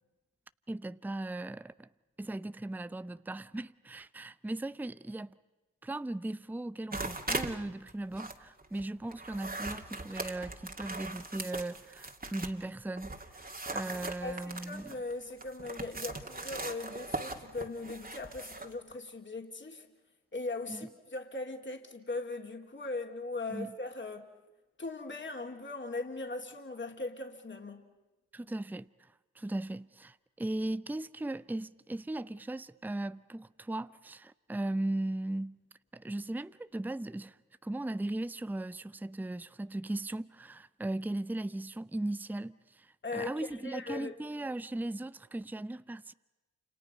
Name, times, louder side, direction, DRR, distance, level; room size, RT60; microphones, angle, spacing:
voice 1, 0.7-1.9 2.2-5.4 5.8-14.9 20.7-20.9 23.5-23.7 28.3-35.6 35.9-46.1, right 1 dB, 5° right, 0.7 m, -38 dB
sound 1, 6.9-7.6 7.9-12.6 13.0-18.7, right 2 dB, 20° right, 2.6 m, -40 dB
voice 2, 14.2-19.9 20.3-24.2 24.8-27.8 43.0-44.1, left 3 dB, 25° left, 3.4 m, -39 dB
29.5 x 28.0 x 5.6 m
hypercardioid pair, 45°, 42 cm